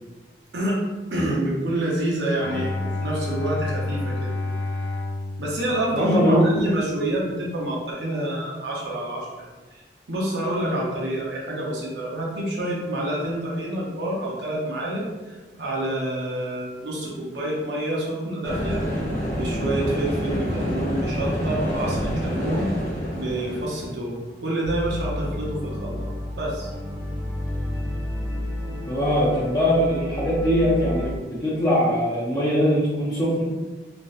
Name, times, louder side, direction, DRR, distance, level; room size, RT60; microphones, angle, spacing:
voice 1, 1.1-4.3 5.4-9.8 10.1-18.8 19.3-22.7 23.1-26.1 26.4-26.7, right 1 dB, 70° right, -4 dB, 0.6 m, -28 dB
Bowed string instrument, 2.4-6.5, left 2 dB, 90° left, 0.3 m, -30 dB
voice 2, 5.9-6.4 28.9-33.4, equal, 20° left, -7 dB, 0.4 m, -21 dB
sound 1, 18.4-23.9, equal, 50° left, 0.9 m, -27 dB
sound 2, 24.6-31.2, left 1 dB, 10° right, 0.7 m, -31 dB
2.5 x 2.1 x 2.3 m, 1.2 s
head